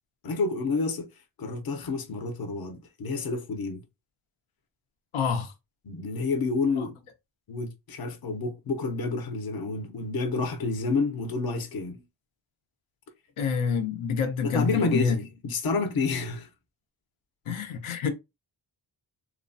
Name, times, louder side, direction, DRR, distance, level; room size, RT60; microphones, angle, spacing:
voice 1, 0.2-1.1 1.4-3.8 5.8-6.9 7.5-12.0 14.4-16.5, left 3 dB, 50° left, 0.7 m, -29 dB
voice 2, 5.1-5.5 6.8-6.9 13.4-15.2 17.5-18.1, left 6 dB, 85° left, 0.6 m, -27 dB
3.0 x 2.0 x 2.6 m
wide cardioid pair, 75°, 48 cm